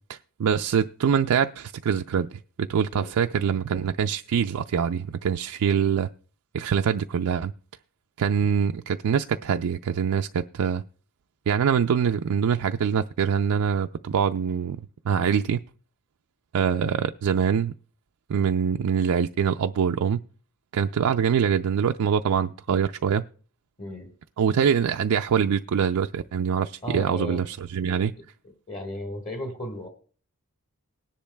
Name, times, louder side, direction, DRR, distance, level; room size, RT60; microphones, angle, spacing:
voice 1, 0.1-2.3 2.6-6.1 6.5-7.5 8.2-10.8 11.5-14.8 15.1-15.6 16.5-17.7 18.3-20.2 20.7-23.2 24.4-28.1, right 7 dB, 75° right, 0.4 m, -24 dB
voice 2, 23.8-24.1 26.8-27.4 28.4-29.9, left 1 dB, 30° left, 1.5 m, -35 dB
19.5 x 10.0 x 2.2 m
head